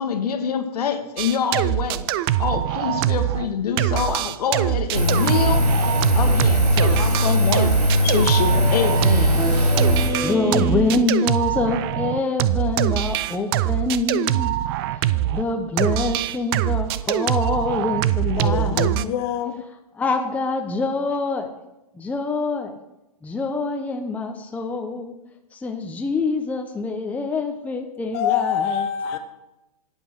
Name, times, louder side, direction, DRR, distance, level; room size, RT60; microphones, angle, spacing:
voice 1, 0.0-2.0 2.4-5.6 6.1-9.4, left 7 dB, 75° left, 7 dB, 1.4 m, -25 dB
sound 1, 1.2-3.5 3.8-15.5 15.8-19.0, right 14 dB, 40° right, 0.4 m, -23 dB
Engine, 4.9-10.1, left 1 dB, 85° right, 2.8 m, -20 dB
Speech synthesizer, 8.4-11.4, right 2 dB, 15° right, 1.4 m, -28 dB
voice 2, 9.9-14.6 14.9-19.1 19.7-21.5 21.9-22.7 23.2-25.1 25.5-28.9, left 3 dB, 5° left, 4 dB, 0.7 m, -25 dB
voice 3, 18.4-19.6 28.1-29.2, left 9 dB, 40° left, 6 dB, 0.9 m, -25 dB
11.5 x 5.3 x 6.4 m, 0.91 s
hypercardioid pair, 135°, 20 cm